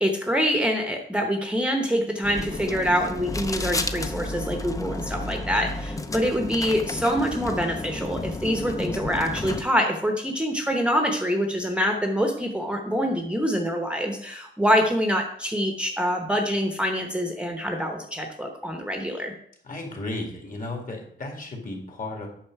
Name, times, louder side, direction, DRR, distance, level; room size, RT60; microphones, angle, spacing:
voice 1, 0.0-19.3, equal, 5° right, 3 dB, 0.9 m, -25 dB
sound 1, 2.2-9.6, left 2 dB, 15° left, 0.6 m, -32 dB
voice 2, 19.6-22.3, left 2 dB, 45° left, 2 dB, 2.3 m, -34 dB
8.8 x 6.2 x 4.7 m, 0.66 s
wide cardioid pair, 150°, 19 cm